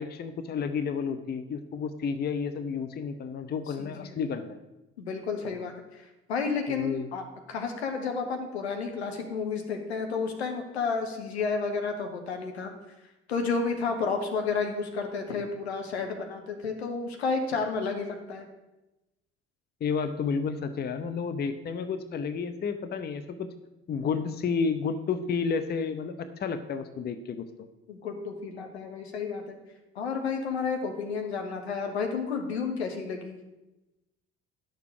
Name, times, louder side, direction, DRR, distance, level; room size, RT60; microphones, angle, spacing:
voice 1, 0.0-4.6 6.7-7.1 19.8-23.5 23.9-27.7, left 5 dB, 30° left, 11 dB, 0.7 m, -31 dB
voice 2, 3.8-4.2 5.0-6.0 6.3-12.7 13.3-18.5 27.9-29.6 29.9-33.4, left 4 dB, 75° left, 4 dB, 1.1 m, -31 dB
10.5 x 6.8 x 4.9 m, 0.99 s
figure-of-eight pair, 50°, 32 cm